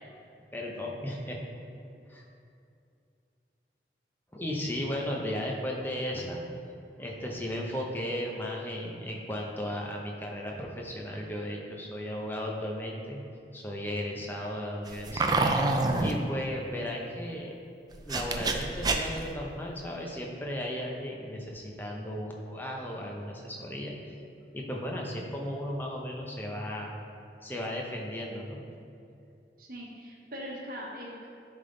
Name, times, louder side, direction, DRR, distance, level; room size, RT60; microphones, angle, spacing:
voice 1, 0.5-1.4 2.1-2.2 4.3-6.4 7.0-13.2 13.5-15.5 15.9-17.6 18.1-24.2 24.5-26.9 27.4-28.6, equal, 10° left, -1 dB, 0.7 m, -35 dB
sound 1, 14.9-16.1 17.9-19.3, right 2 dB, 25° right, 0.3 m, -27 dB
voice 2, 29.6-31.3, equal, 55° right, -2 dB, 1.2 m, -41 dB
10.5 x 3.6 x 3.9 m, 2.5 s
head